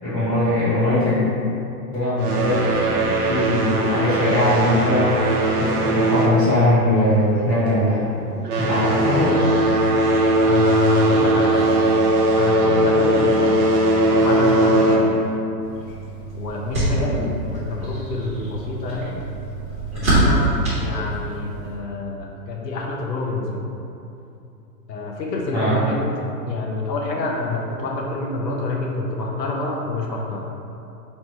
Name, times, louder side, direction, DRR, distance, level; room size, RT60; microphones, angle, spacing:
voice 1, 0.0-1.2 1.9-5.2 5.6-8.0 8.5-9.4 17.0-17.2 25.5-25.8, left 1 dB, 30° left, -15 dB, 1.1 m, -20 dB
sound 1, 2.2-7.1 7.4-7.7 8.3-15.3, right 1 dB, 65° right, 0.8 m, -19 dB
voice 2, 10.5-11.8 12.4-13.6 14.1-15.2 16.3-19.2 19.9-23.7 24.9-26.0 26.4-30.5, left 3 dB, 80° left, -1 dB, 0.9 m, -27 dB
sound 2, 15.6-21.7, right 1 dB, 10° right, 0.6 m, -25 dB
3.3 x 2.9 x 4.4 m, 2.8 s
hypercardioid pair, 170°, 49 cm